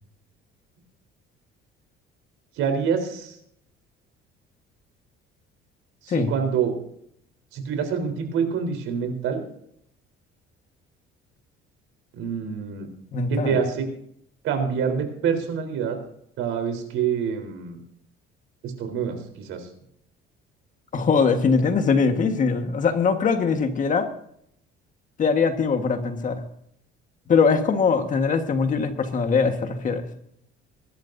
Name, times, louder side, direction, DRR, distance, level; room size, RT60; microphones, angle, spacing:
voice 1, 2.6-3.4 6.0-6.7 7.5-9.4 12.1-12.9 13.3-13.9 14.4-16.0 16.4-17.8 18.6-19.7, right 6 dB, 75° right, 6 dB, 3.7 m, -26 dB
voice 2, 13.1-13.6 20.9-24.1 25.2-26.4 27.3-30.1, left 5 dB, 40° left, 7 dB, 1.5 m, -21 dB
22.0 x 12.0 x 2.6 m, 0.70 s
cardioid pair, 150°, 21 cm